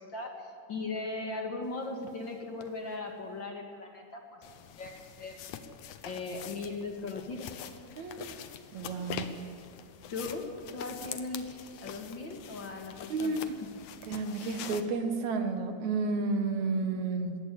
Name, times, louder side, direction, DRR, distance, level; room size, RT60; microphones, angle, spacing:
voice 1, 0.0-5.4 6.0-7.7 10.1-10.4 10.7-13.7, left 3 dB, 40° left, 2 dB, 2.4 m, -39 dB
sound 1, 2.0-2.1 2.6-2.7 4.4-14.8, left 9 dB, 75° left, 2.4 m, -44 dB
voice 2, 8.0-8.5 8.7-9.3 13.1-13.6 14.1-17.4, right 3 dB, 70° right, 6 dB, 2.7 m, -31 dB
21.0 x 17.5 x 8.5 m, 2.3 s
omnidirectional pair, 3.5 m